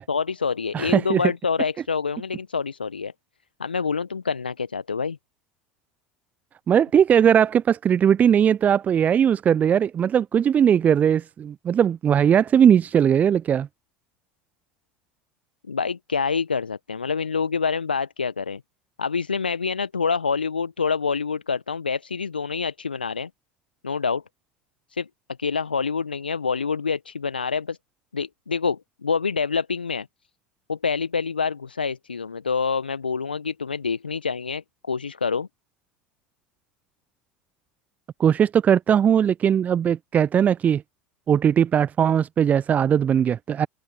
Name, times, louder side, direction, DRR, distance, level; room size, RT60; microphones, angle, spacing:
voice 1, 0.1-3.1 3.6-5.2 15.7-18.6 19.0-23.3 23.8-24.2 24.9-25.1 25.4-27.8 28.1-30.1 30.7-35.5, left 5 dB, 85° left, 1.2 m, -26 dB
voice 2, 0.7-1.2 6.7-13.7 38.2-40.8 41.3-43.7, right 8 dB, 30° right, 0.5 m, -19 dB
figure-of-eight pair, 70°, 5 cm